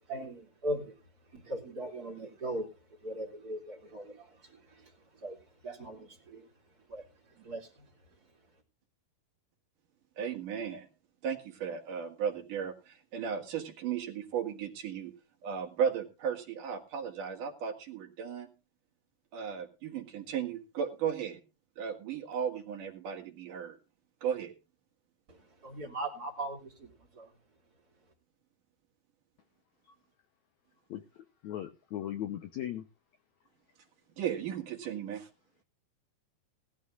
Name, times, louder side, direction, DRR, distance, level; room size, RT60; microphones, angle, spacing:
voice 1, 0.1-0.9 1.3-2.7 3.0-4.3 5.2-5.4 5.6-6.4 6.9-7.0 7.4-7.7 25.6-26.9 27.2-27.3, right 1 dB, 25° right, 2 dB, 2.8 m, -38 dB
voice 2, 10.2-10.9 11.2-15.1 15.4-18.5 19.3-21.4 21.8-23.8 24.2-24.5 34.2-35.3, right 8 dB, 60° right, 3 dB, 3.4 m, -35 dB
voice 3, 30.9-32.9, left 11 dB, 75° left, 9 dB, 1.7 m, -38 dB
19.5 x 13.0 x 2.5 m, 0.31 s
omnidirectional pair, 4.4 m